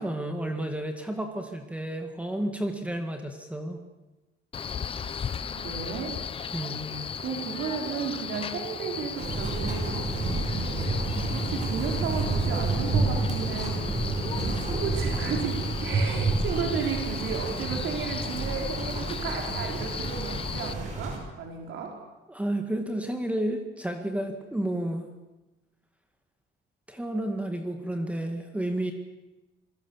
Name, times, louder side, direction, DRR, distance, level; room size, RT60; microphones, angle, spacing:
voice 1, 0.0-3.8 6.5-7.1 22.3-25.1 26.9-28.9, right 1 dB, 5° right, 4 dB, 2.0 m, -31 dB
Male speech man speaking, 4.5-20.7, left 7 dB, 30° left, 0.8 m, -36 dB
voice 2, 5.0-6.2 7.2-10.1 11.2-13.8 14.3-22.0, right 6 dB, 80° right, 1 dB, 4.6 m, -34 dB
sound 1, 9.2-21.2, right 3 dB, 40° right, 5.6 m, -29 dB
27.0 x 22.0 x 7.3 m, 1.1 s
cardioid pair, 165°, 20 cm